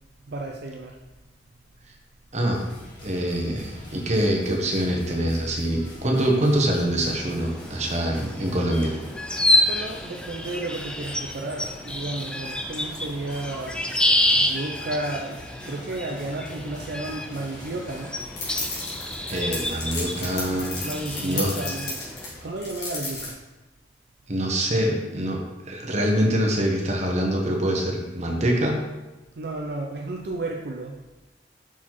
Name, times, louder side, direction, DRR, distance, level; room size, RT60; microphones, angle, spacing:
voice 1, 0.3-1.0 9.7-13.8 14.4-15.4 15.7-18.2 20.8-23.4 29.4-31.0, right 2 dB, 60° right, 0 dB, 0.5 m, -32 dB
sound 1, 2.5-21.5, left 1 dB, 45° left, 2.0 m, -44 dB
voice 2, 3.0-8.9 19.3-20.8 21.2-21.5 24.3-25.4 25.6-28.8, right 1 dB, 40° right, 0 dB, 1.0 m, -24 dB
sound 2, 7.2-22.3, left 1 dB, 5° left, 0.3 m, -28 dB
sound 3, 18.4-23.3, left 3 dB, 65° left, 2.3 m, -34 dB
5.8 x 4.1 x 4.5 m, 1.1 s
head